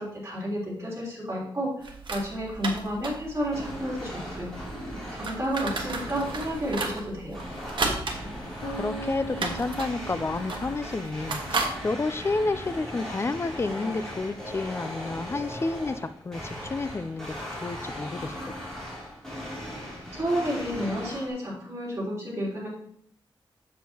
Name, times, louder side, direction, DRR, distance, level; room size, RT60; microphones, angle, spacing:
voice 1, 0.0-4.5 5.1-7.5 20.1-22.7, equal, 30° right, -6 dB, 3.5 m, -31 dB
sound 1, 1.8-11.7, right 3 dB, 65° right, 1.3 m, -35 dB
sound 2, 3.4-21.3, equal, 5° left, 3.0 m, -38 dB
sound 3, 8.6-12.5, right 2 dB, 60° left, 1.6 m, -42 dB
voice 2, 8.8-18.6, left 3 dB, 30° left, 12 dB, 0.4 m, -30 dB
7.4 x 7.3 x 2.9 m, 0.64 s
wide cardioid pair, 100°, 9 cm